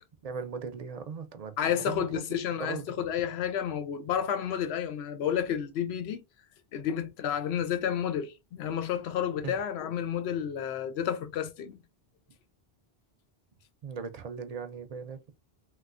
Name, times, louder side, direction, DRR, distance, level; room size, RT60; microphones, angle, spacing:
voice 1, 0.2-2.9 9.4-9.6 13.8-15.3, right 5 dB, 55° right, 0.5 m, -39 dB
voice 2, 1.6-6.2 6.7-11.8, left 9 dB, 85° left, 0.8 m, -31 dB
3.0 x 3.0 x 2.4 m
omnidirectional pair, 1.0 m